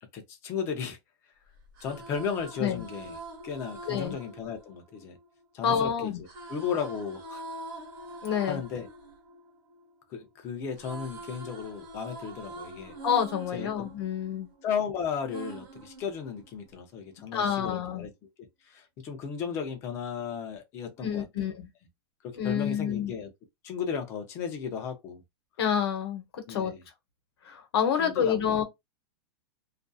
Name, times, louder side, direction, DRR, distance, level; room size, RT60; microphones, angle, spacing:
voice 1, 0.1-1.0 1.8-3.2 3.4-5.2 5.5-6.1 6.5-7.6 8.4-8.9 10.1-13.0 13.5-13.9 14.6-18.1 18.4-21.5 22.2-23.3 23.6-25.2 26.5-26.8 28.0-28.6, left 7 dB, 20° left, 0.5 m, -35 dB
sound 1, 1.6-5.7 6.3-10.3 10.6-14.8 15.3-16.8, right 2 dB, 50° right, 1.2 m, -44 dB
voice 2, 3.9-4.2 5.6-6.2 8.2-8.6 13.0-14.5 17.3-18.1 21.0-21.7 22.4-23.1 25.6-26.7 27.5-28.6, left 8 dB, 65° left, 0.9 m, -28 dB
2.5 x 2.4 x 2.2 m
supercardioid pair, 175°, 14 cm